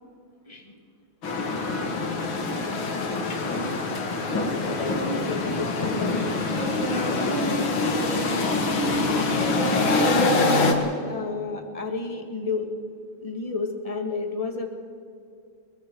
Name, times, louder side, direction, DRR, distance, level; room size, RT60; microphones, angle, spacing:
voice 1, 0.5-0.8 4.6-7.9 8.8-10.5 11.1-12.7 13.2-14.7, left 3 dB, 15° left, 3 dB, 2.3 m, -31 dB
sound 1, 1.2-10.7, left 3 dB, 65° left, 2.8 m, -25 dB
22.0 x 22.0 x 6.4 m, 2.4 s
omnidirectional pair, 2.4 m